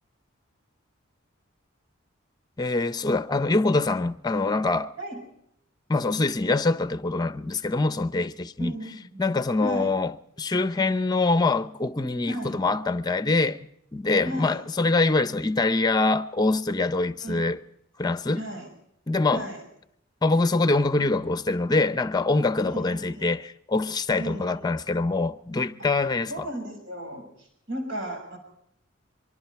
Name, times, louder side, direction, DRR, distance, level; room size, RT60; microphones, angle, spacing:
voice 1, 2.6-4.9 5.9-8.7 9.2-10.1 10.4-13.6 13.9-17.6 18.0-18.5 19.1-19.4 20.2-26.5, left 3 dB, 20° left, 0.7 m, -24 dB
voice 2, 8.6-9.3 9.6-9.9 12.3-12.6 14.2-14.6 17.2-17.4 18.3-18.7 19.3-19.6 22.6-23.3 24.2-24.7 26.3-28.4, right 1 dB, 65° right, 6.2 m, -35 dB
24.0 x 24.0 x 4.6 m
head